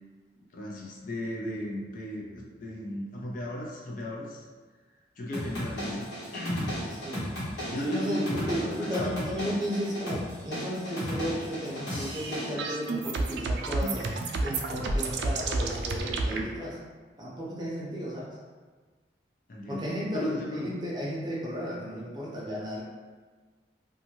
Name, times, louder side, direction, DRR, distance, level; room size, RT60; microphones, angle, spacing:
voice 1, 0.5-4.4 5.2-6.8 7.7-9.3 19.5-20.7, equal, 50° left, -2 dB, 0.4 m, -35 dB
sound 1, 5.3-12.5, equal, 85° left, 1.1 m, -35 dB
voice 2, 7.9-16.8 17.2-18.4 19.7-22.8, equal, 25° right, -5 dB, 0.5 m, -34 dB
sound 2, 12.1-16.4, right 3 dB, 75° right, 0.3 m, -30 dB
2.6 x 2.3 x 2.9 m, 1.4 s
head